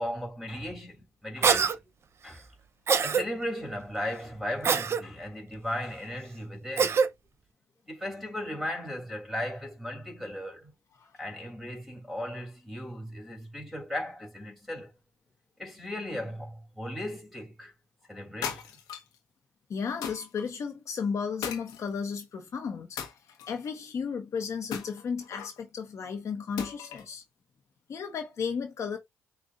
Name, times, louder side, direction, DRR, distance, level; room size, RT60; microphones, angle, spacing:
voice 1, 0.0-1.8 2.2-2.4 3.0-7.0 7.9-10.7 11.2-14.9 15.6-17.7 18.1-18.7, left 1 dB, ahead, 2.8 m, -36 dB
Cough, 1.4-1.8 2.9-3.2 4.6-5.0 6.8-7.1, right 6 dB, 50° right, 0.6 m, -23 dB
sound 1, 18.4-19.2 20.0-20.5 21.4-22.2 23.0-23.7 24.7-25.6 26.6-27.1, left 8 dB, 85° left, 1.0 m, -37 dB
voice 2, 19.7-23.0 23.5-27.2 27.9-29.0, left 6 dB, 55° left, 1.0 m, -34 dB
6.2 x 2.4 x 2.4 m
supercardioid pair, 60°, 6 cm